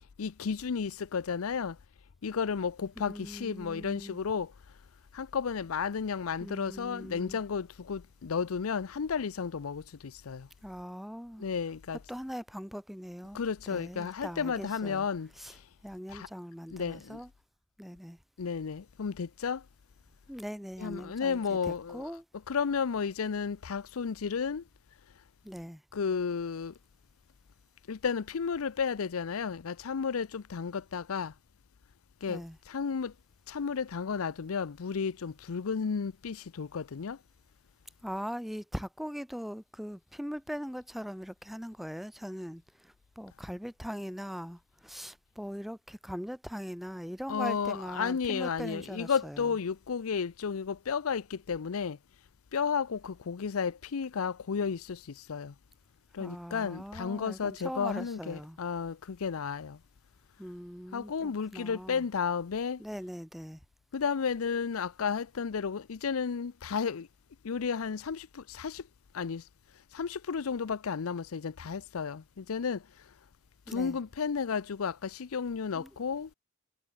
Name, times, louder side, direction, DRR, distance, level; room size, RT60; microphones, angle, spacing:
voice 1, 0.2-1.8 2.2-4.5 5.1-10.5 11.4-12.0 13.3-15.3 16.1-16.3 16.7-17.2 18.4-19.6 20.8-22.1 22.5-24.6 25.9-26.7 27.9-31.3 32.2-33.1 33.5-37.2 47.3-52.0 52.5-55.0 55.3-55.5 56.1-59.8 60.9-62.8 63.9-67.1 67.4-68.8 69.1-69.4 69.9-72.8 73.7-76.3, left 6 dB, 85° left, 0.6 m, -33 dB
voice 2, 3.0-4.2 6.4-7.4 10.6-11.4 12.1-13.4 13.7-15.1 15.4-15.5 15.8-17.3 17.8-18.2 20.3-22.2 25.4-25.8 32.3-32.6 38.0-49.5 56.2-58.6 60.4-62.0 62.8-63.6 73.7-74.0 75.7-75.9, equal, ahead, 1.3 m, -41 dB
head